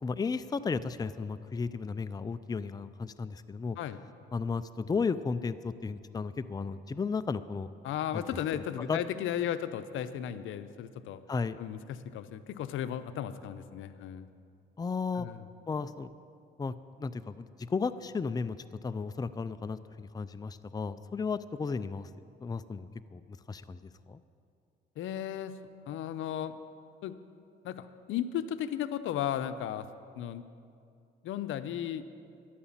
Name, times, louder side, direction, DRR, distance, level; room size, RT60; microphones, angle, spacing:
voice 1, 0.0-3.8 4.3-7.7 8.1-8.2 8.8-9.0 11.3-11.6 14.8-15.3 15.7-16.1 16.6-16.7 17.0-18.6 18.8-22.1 22.4-24.2, left 4 dB, 20° left, 12 dB, 0.5 m, -34 dB
voice 2, 7.8-11.2 11.6-14.3 15.1-15.5 25.0-25.5 25.9-26.6 27.0-27.2 27.6-29.9 30.1-30.4 31.2-32.0, left 10 dB, 85° left, 12 dB, 0.7 m, -35 dB
13.0 x 11.5 x 7.3 m, 2.4 s
cardioid pair, 90°, 20 cm